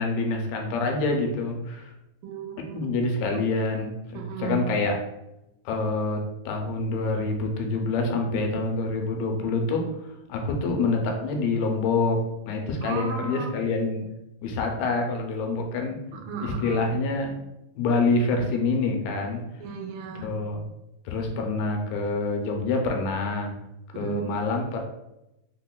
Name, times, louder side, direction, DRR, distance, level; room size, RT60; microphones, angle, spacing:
voice 1, 0.0-1.9 2.7-5.0 5.7-14.0 14.4-16.0 16.4-17.4 17.8-19.4 20.2-20.6 21.1-23.5 23.9-24.8, left 3 dB, 85° left, 2 dB, 2.4 m, -26 dB
voice 2, 2.2-2.8 4.1-4.7 12.8-13.5 16.1-16.9 19.6-20.3 23.9-24.2, right 5 dB, 85° right, 1 dB, 2.5 m, -34 dB
5.7 x 2.1 x 2.2 m, 0.90 s
omnidirectional pair, 4.3 m